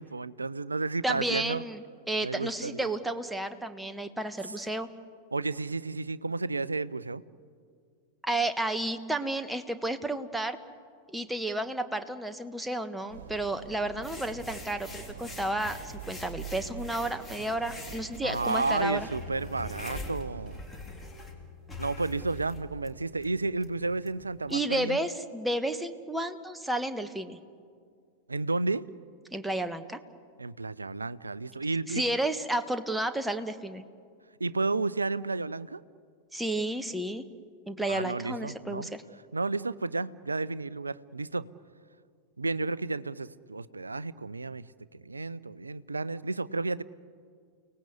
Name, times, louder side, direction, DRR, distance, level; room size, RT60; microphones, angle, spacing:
voice 1, 0.0-1.6 2.2-2.9 4.5-4.6 5.3-7.2 18.2-20.6 21.8-25.0 28.3-28.9 30.4-32.0 34.4-35.8 37.9-38.9 39.3-41.5 42.4-46.8, right 3 dB, 80° right, 19 dB, 0.6 m, -32 dB
voice 2, 1.0-4.9 8.2-10.6 11.1-19.1 24.5-27.4 29.3-30.0 31.9-33.8 36.3-37.2 37.7-39.0, right 1 dB, 5° right, 9 dB, 1.3 m, -32 dB
sound 1, 13.1-20.6, right 8 dB, 60° right, 1.9 m, -45 dB
sound 2, 14.0-24.5, left 2 dB, 15° left, 3.3 m, -44 dB
30.0 x 18.5 x 8.2 m, 2.1 s
figure-of-eight pair, 90°, 0 cm